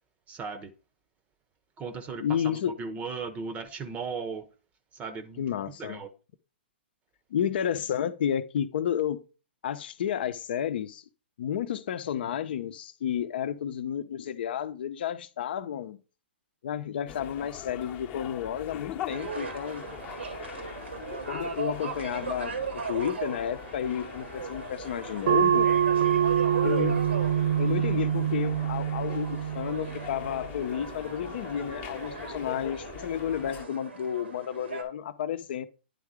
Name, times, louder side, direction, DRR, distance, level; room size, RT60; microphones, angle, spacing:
voice 1, 0.3-0.7 1.8-4.5 4.9-5.4 5.8-6.1, right 5 dB, 25° right, 0.8 m, -37 dB
voice 2, 2.2-2.7 5.4-6.0 7.3-9.2 9.6-11.0 11.4-16.0 16.6-19.9 21.3-25.7 26.6-27.1 27.6-35.7, left 9 dB, 60° left, 0.7 m, -31 dB
sound 1, 17.1-33.6, left 10 dB, 30° left, 0.9 m, -43 dB
sound 2, 19.1-34.8, right 4 dB, 90° right, 1.6 m, -38 dB
sound 3, 25.3-30.4, right 9 dB, 55° right, 0.3 m, -25 dB
10.0 x 3.6 x 4.9 m
hypercardioid pair, 125°, 6 cm